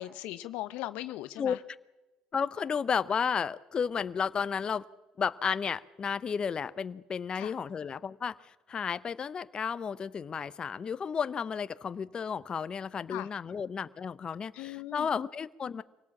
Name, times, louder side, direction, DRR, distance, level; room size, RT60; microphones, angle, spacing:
voice 1, 0.0-1.6 7.3-7.5 13.1-13.3 14.5-15.1, left 15 dB, 75° left, 13 dB, 0.8 m, -39 dB
voice 2, 2.3-4.8 5.2-15.8, left 6 dB, 40° left, 14 dB, 0.8 m, -33 dB
25.0 x 18.0 x 7.4 m, 1.0 s
hypercardioid pair, 65°, 2 cm